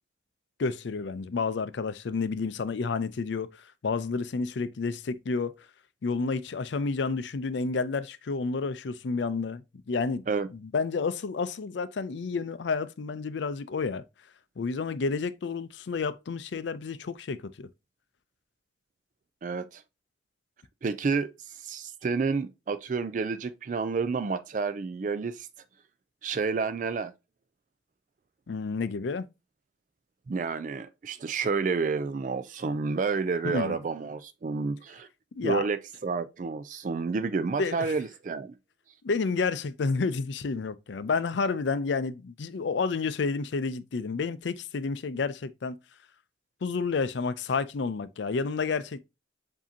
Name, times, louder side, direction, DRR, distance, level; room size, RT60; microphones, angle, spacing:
voice 1, 0.6-3.5 3.8-5.5 6.0-10.2 10.5-14.0 14.6-17.7 28.5-29.3 33.4-33.8 35.4-35.6 37.6-37.9 39.0-45.8 46.6-49.0, left 4 dB, 75° left, 0.4 m, -30 dB
voice 2, 19.4-19.8 20.8-25.5 26.2-27.1 30.3-35.1 35.4-38.5, right 4 dB, 45° right, 0.3 m, -30 dB
7.3 x 2.7 x 2.7 m
head